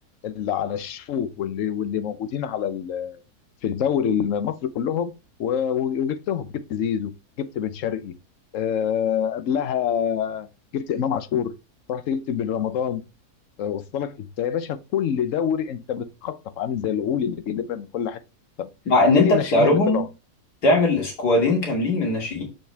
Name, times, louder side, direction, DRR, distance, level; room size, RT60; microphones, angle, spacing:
voice 1, 0.2-3.2 3.6-5.1 5.4-7.1 7.4-8.1 8.5-10.5 10.7-11.6 11.9-13.0 13.6-18.2 18.6-18.7 19.1-20.1, left 8 dB, 60° left, 1.0 m, -26 dB
voice 2, 18.9-20.0 20.6-22.4, left 2 dB, 90° left, 3.0 m, -19 dB
7.1 x 5.3 x 3.4 m
omnidirectional pair, 1.7 m